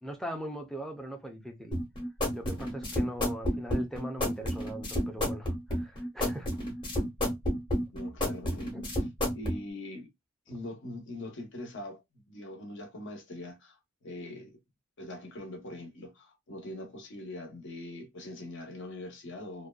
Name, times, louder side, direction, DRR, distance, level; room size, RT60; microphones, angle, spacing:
voice 1, 0.0-1.8 2.3-6.5 8.4-8.8, equal, ahead, 0.5 m, -40 dB
sound 1, 1.7-9.6, equal, 20° left, 0.9 m, -30 dB
voice 2, 7.9-8.7 9.3-10.1 10.5-14.6 15.0-19.7, left 1 dB, 55° left, 0.8 m, -42 dB
2.6 x 2.2 x 2.2 m
head